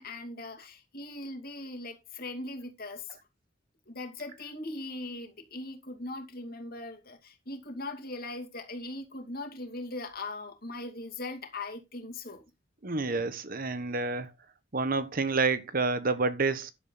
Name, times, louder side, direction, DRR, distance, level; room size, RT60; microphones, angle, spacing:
voice 1, 0.0-3.1 3.9-12.4, left 2 dB, 50° left, 2.5 m, -40 dB
voice 2, 12.8-14.3 14.7-16.7, right 3 dB, 45° right, 1.1 m, -29 dB
11.0 x 8.2 x 3.9 m
head